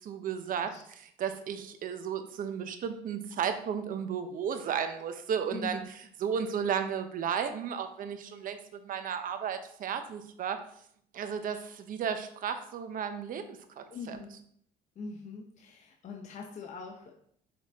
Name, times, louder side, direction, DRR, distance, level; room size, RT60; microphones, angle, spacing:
voice 1, 0.0-5.8 6.2-8.6 8.8-10.6 11.1-14.2, right 7 dB, 55° right, 8 dB, 0.8 m, -34 dB
voice 2, 13.9-14.4 15.0-17.1, left 4 dB, 45° left, 1 dB, 0.8 m, -42 dB
6.5 x 4.1 x 3.5 m, 0.67 s
cardioid pair, 110°, 17 cm